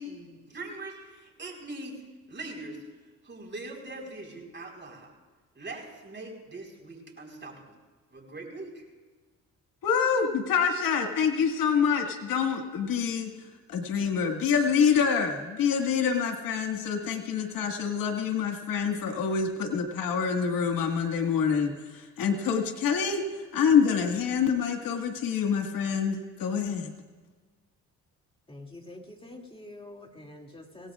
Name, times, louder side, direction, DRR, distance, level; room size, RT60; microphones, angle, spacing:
voice 1, 0.0-1.9 2.3-2.8 3.2-5.1 5.5-7.8 8.1-8.8, right 2 dB, 35° right, 0 dB, 4.6 m, -41 dB
voice 2, 9.8-13.3 13.7-26.9, left 6 dB, 85° left, 4 dB, 2.0 m, -26 dB
voice 3, 28.5-30.9, left 1 dB, 15° left, 1 dB, 2.6 m, -46 dB
25.5 x 18.0 x 2.5 m, 1.3 s
cardioid pair, 80°, 33 cm